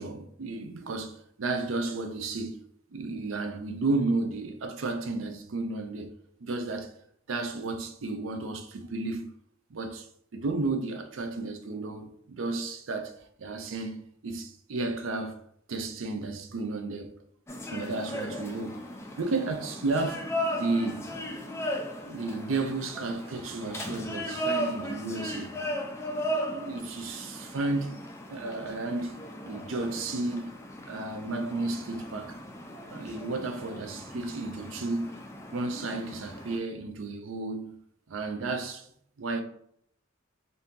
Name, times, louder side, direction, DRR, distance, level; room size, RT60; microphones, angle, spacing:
voice 1, 0.0-2.6 2.9-6.1 6.4-6.9 7.3-9.3 9.7-10.1 10.3-15.4 15.7-17.2 17.7-18.9 19.2-20.3 20.6-21.1 22.1-25.5 26.5-27.9 28.3-30.5 30.9-32.4 32.9-35.1 35.5-37.8 38.1-38.9 39.2-39.4, right 3 dB, 75° right, 0.5 m, -33 dB
sound 1, 17.5-36.6, equal, 15° left, 0.4 m, -37 dB
2.8 x 2.6 x 3.5 m
head